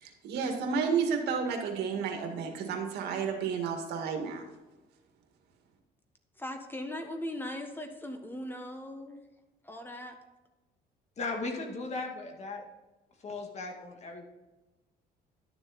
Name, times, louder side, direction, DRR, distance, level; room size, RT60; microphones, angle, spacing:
voice 1, 0.0-4.4, right 6 dB, 75° right, 3 dB, 2.0 m, -31 dB
voice 2, 6.4-9.2 9.6-10.1, left 1 dB, 10° left, 5 dB, 1.3 m, -39 dB
voice 3, 11.2-12.6 13.2-14.3, left 3 dB, 40° left, 2 dB, 1.9 m, -37 dB
11.5 x 7.1 x 4.2 m, 1.1 s
cardioid pair, 110°, 17 cm